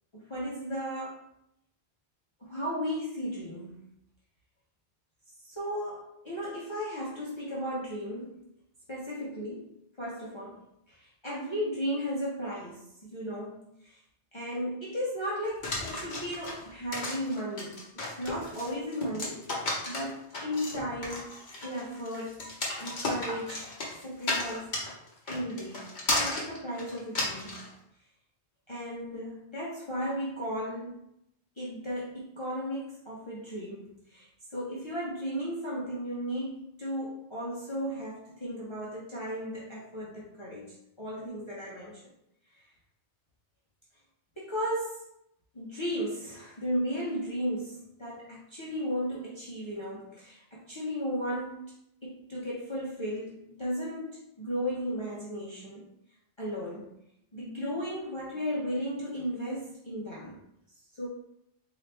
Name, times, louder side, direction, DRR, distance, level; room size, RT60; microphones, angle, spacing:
voice 1, 0.1-1.2 2.4-3.8 5.4-8.4 8.9-9.7 10.0-10.6 10.9-14.0 14.3-21.3 21.6-22.5 22.8-23.7 24.0-24.8 25.2-25.9 26.2-27.7 28.7-31.0 31.6-42.0 44.4-45.0 45.5-51.7 52.0-55.9 56.4-56.9 57.3-60.4 60.9-61.1, equal, 30° left, -7 dB, 0.9 m, -35 dB
sound 1, 15.6-27.7, left 2 dB, 45° left, 1.1 m, -34 dB
4.1 x 3.0 x 3.3 m, 0.78 s
omnidirectional pair, 1.1 m